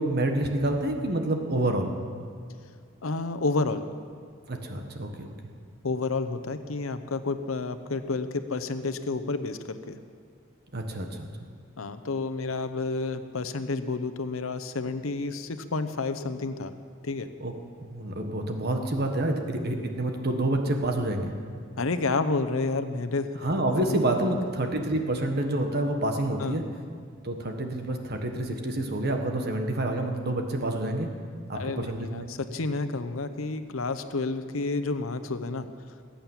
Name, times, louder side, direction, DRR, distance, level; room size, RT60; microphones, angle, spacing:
voice 1, 0.0-1.9 4.5-5.3 10.7-11.3 17.4-17.5 17.9-21.3 23.4-26.6 27.2-31.1 31.5-32.2, right 1 dB, 50° right, 4 dB, 1.5 m, -28 dB
voice 2, 3.0-3.8 5.8-10.0 11.8-16.7 17.0-17.3 21.8-23.3 23.8-24.0 26.4-26.6 31.5-35.7, left 3 dB, 85° left, 10 dB, 0.9 m, -30 dB
20.5 x 8.8 x 7.4 m, 2.3 s
head